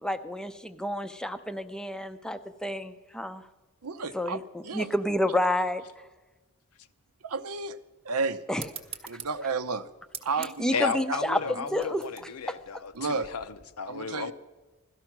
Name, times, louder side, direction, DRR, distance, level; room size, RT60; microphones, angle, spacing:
voice 1, 0.0-3.5 4.1-5.8 8.5-8.7 10.4-12.0 12.5-12.6, left 1 dB, 5° left, 10 dB, 0.5 m, -30 dB
voice 2, 3.8-4.4 4.6-4.9 7.2-7.8 8.0-8.4 9.1-9.9 10.2-11.2 11.5-11.6 13.0-13.3 13.9-14.3, right 4 dB, 85° right, 12 dB, 0.7 m, -32 dB
sound 1, 8.6-13.6, right 7 dB, 25° right, 0.9 m, -46 dB
voice 3, 10.7-14.3, left 6 dB, 85° left, 11 dB, 0.7 m, -34 dB
17.0 x 13.0 x 5.9 m, 1.2 s
head